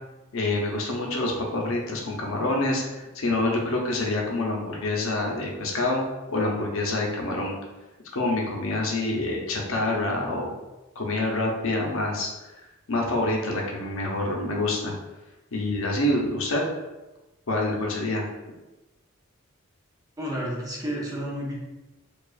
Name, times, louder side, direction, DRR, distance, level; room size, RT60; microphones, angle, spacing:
voice 1, 0.3-7.6 8.1-10.5 11.0-12.3 12.6-14.9 15.5-16.6 17.5-18.2, left 2 dB, 70° left, 0 dB, 0.7 m, -27 dB
voice 2, 20.2-21.5, equal, 15° right, -3 dB, 0.7 m, -31 dB
4.6 x 2.4 x 2.4 m, 1.1 s
head